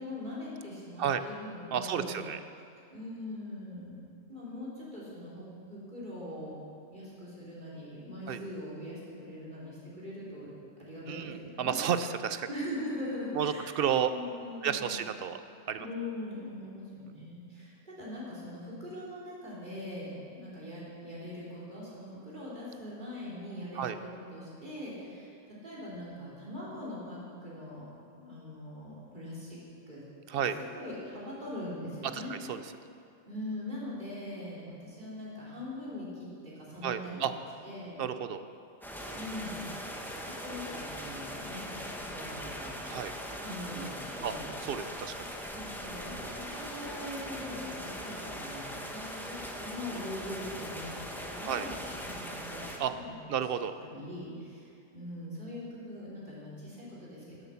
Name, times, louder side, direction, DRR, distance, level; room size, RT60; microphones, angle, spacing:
voice 1, 0.0-2.2 2.9-4.0 4.3-6.6 6.9-10.5 10.8-11.8 12.5-15.0 15.7-25.3 25.6-27.9 28.1-29.6 29.9-30.0 30.3-30.4 30.7-32.3 33.3-36.3 36.6-37.2 37.6-38.0 39.1-39.6 39.9-42.8 43.4-44.5 45.5-51.7 52.1-53.1 53.8-57.5, left 1 dB, 40° right, -8 dB, 3.6 m, -42 dB
voice 2, 1.7-2.4 8.3-8.4 11.1-12.5 13.3-14.1 14.6-15.4 15.7-15.9 23.7-24.0 30.3-30.6 32.1-32.6 36.8-37.3 38.0-38.4 42.8-43.1 44.2-44.3 44.6-45.2 51.4-51.7 52.8-52.9 53.3-53.7, right 8 dB, 60° right, 11 dB, 0.6 m, -31 dB
sound 1, 38.8-52.8, equal, ahead, 0.9 m, -40 dB
11.5 x 8.2 x 7.0 m, 2.4 s
omnidirectional pair, 1.3 m